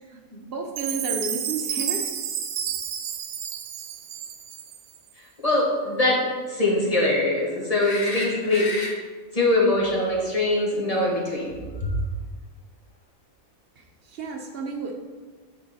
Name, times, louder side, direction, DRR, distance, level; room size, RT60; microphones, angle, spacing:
voice 1, 0.1-2.1 13.8-14.9, right 3 dB, 45° right, 2 dB, 1.1 m, -32 dB
Chime, 0.8-5.0, right 9 dB, 90° right, 1.1 m, -31 dB
voice 2, 5.4-8.9 9.3-11.5 11.8-11.9, left 2 dB, 25° left, -4 dB, 1.7 m, -23 dB
sound 1, 7.8-8.9 11.8-11.9, left 2 dB, 45° left, 1.2 m, -32 dB
9.6 x 4.6 x 4.4 m, 1.4 s
omnidirectional pair, 1.4 m